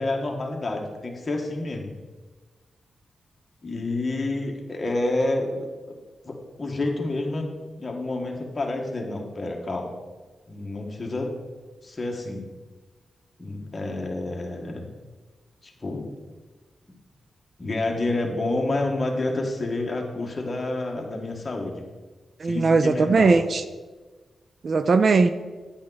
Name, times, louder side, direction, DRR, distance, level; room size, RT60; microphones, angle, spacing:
voice 1, 0.0-1.9 3.6-5.9 6.2-9.9 10.5-11.3 11.8-12.5 13.4-14.8 15.6-16.1 17.6-21.8 22.4-23.4, left 2 dB, 30° left, 1 dB, 1.6 m, -29 dB
voice 2, 22.4-23.6 24.6-25.3, right 4 dB, 50° right, 11 dB, 0.4 m, -19 dB
9.9 x 8.5 x 4.1 m, 1.3 s
wide cardioid pair, 120°, 0 cm